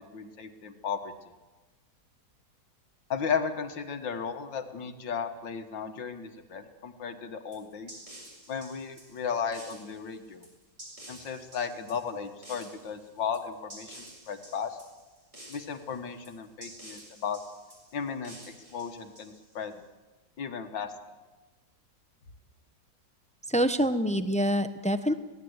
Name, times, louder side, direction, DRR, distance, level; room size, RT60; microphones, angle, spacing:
voice 1, 0.1-1.1 3.1-7.9 8.5-10.4 11.1-14.8 15.5-17.4 17.9-18.4 18.7-19.8 20.4-20.9, left 6 dB, 85° left, 7 dB, 2.2 m, -35 dB
sound 1, 7.5-19.7, right 1 dB, 35° right, 7.6 m, -50 dB
voice 2, 23.5-25.1, equal, 10° left, 10 dB, 0.4 m, -26 dB
25.0 x 18.0 x 8.1 m, 1.2 s
omnidirectional pair, 1.9 m